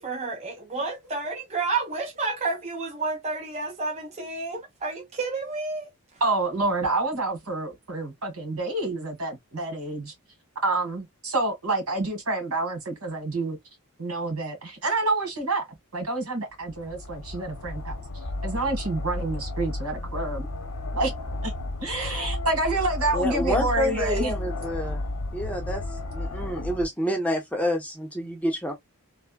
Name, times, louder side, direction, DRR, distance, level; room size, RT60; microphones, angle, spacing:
voice 1, 0.0-5.9, right 3 dB, 30° right, 0.6 m, -30 dB
voice 2, 6.2-10.1 10.6-13.6 14.0-15.7 15.9-18.0 18.4-20.5 20.9-21.1 21.4-21.5 21.8-24.3, right 2 dB, 85° right, 1.7 m, -28 dB
sound 1, 16.5-26.9, left 2 dB, 80° left, 0.8 m, -33 dB
voice 3, 23.1-25.0 25.3-25.8 26.1-28.7, equal, 5° left, 0.7 m, -28 dB
3.4 x 2.1 x 2.2 m
head